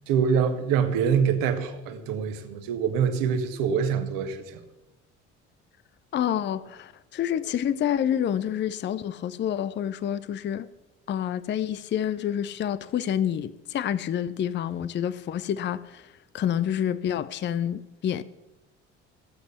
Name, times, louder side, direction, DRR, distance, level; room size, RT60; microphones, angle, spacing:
voice 1, 0.1-4.6, right 7 dB, 60° right, 1.7 m, -25 dB
voice 2, 6.1-10.7 11.1-18.2, left 9 dB, 30° left, 0.6 m, -28 dB
15.5 x 8.1 x 6.9 m
figure-of-eight pair, 55°, 37 cm